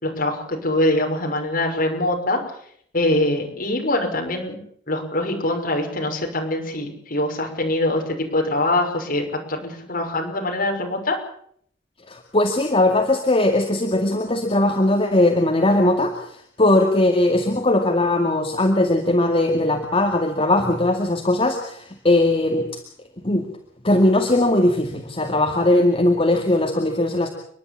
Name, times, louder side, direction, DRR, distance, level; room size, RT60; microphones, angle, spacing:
voice 1, 0.0-2.4 2.9-4.6 4.9-11.2, left 1 dB, 50° left, 1 dB, 6.0 m, -23 dB
voice 2, 12.1-16.2 16.6-22.7 23.2-23.5 23.8-27.3, left 1 dB, 30° left, 2 dB, 2.2 m, -19 dB
30.0 x 11.5 x 8.8 m, 0.64 s
head